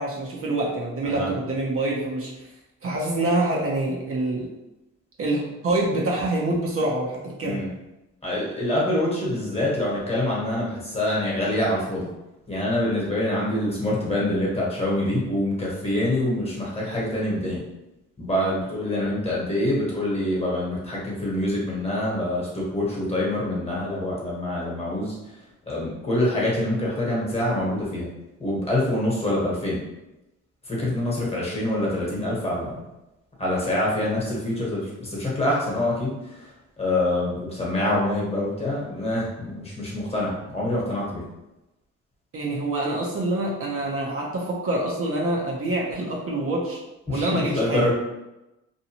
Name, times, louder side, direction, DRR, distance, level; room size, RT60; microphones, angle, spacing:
voice 1, 0.0-2.5 2.8-4.5 5.2-7.6 42.3-46.8 47.1-47.8, right 2 dB, 50° right, -3 dB, 0.7 m, -26 dB
voice 2, 8.2-12.1 12.5-17.6 18.2-25.1 25.7-28.1 28.4-29.8 30.6-32.8 33.4-41.2 47.1-47.9, left 1 dB, 20° left, -5 dB, 1.2 m, -25 dB
2.7 x 2.2 x 2.9 m, 0.96 s
cardioid pair, 90°, 30 cm